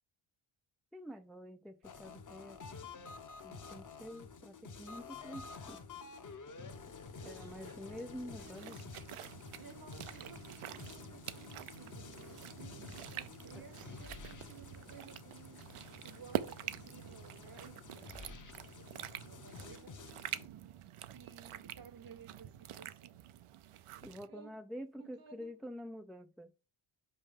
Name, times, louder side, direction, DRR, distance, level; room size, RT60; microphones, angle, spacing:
voice 1, 0.9-2.6 3.4-5.8 7.2-8.8 13.5-13.6 24.0-26.5, equal, ahead, 0.3 m, -47 dB
sound 1, 1.8-20.5, left 4 dB, 40° left, 0.9 m, -50 dB
voice 2, 7.2-9.3 9.6-15.6 16.0-20.0 21.1-23.2 24.3-24.5 25.0-25.5, right 6 dB, 45° right, 0.9 m, -57 dB
sound 2, 8.4-24.3, right 12 dB, 80° right, 0.7 m, -46 dB
5.5 x 5.4 x 5.2 m
wide cardioid pair, 120°, 50 cm